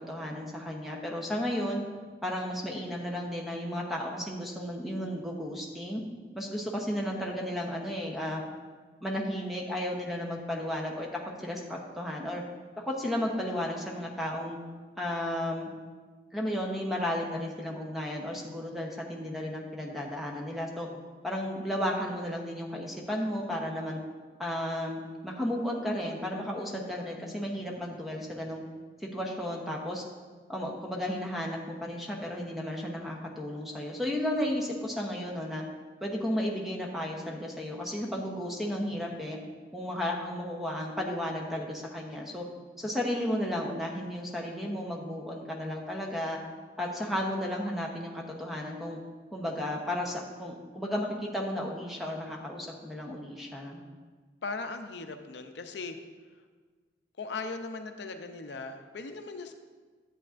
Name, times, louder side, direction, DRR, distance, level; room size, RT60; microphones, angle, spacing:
voice 1, 0.1-1.8 2.2-6.0 6.3-8.4 9.0-12.4 12.8-14.6 15.0-15.7 16.3-20.9 21.2-24.0 24.4-28.6 29.0-30.0 30.5-35.6 36.0-39.4 39.7-42.4 42.8-46.4 46.8-49.0 49.3-53.8, left 1 dB, ahead, -1 dB, 0.8 m, -33 dB
voice 2, 54.4-56.0 57.2-59.5, left 3 dB, 75° left, 7 dB, 0.5 m, -38 dB
10.5 x 8.2 x 2.5 m, 1.4 s
head